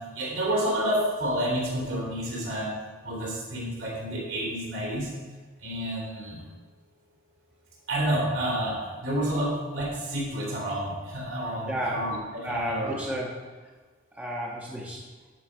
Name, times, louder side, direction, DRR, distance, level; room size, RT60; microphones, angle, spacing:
voice 1, 0.0-2.7 3.0-5.1 5.6-6.4 7.9-13.0, right 1 dB, 85° right, -4 dB, 3.4 m, -29 dB
voice 2, 11.7-12.0 12.4-13.3 14.1-15.0, equal, 10° right, -5 dB, 1.3 m, -31 dB
12.0 x 5.1 x 5.0 m, 1.3 s
head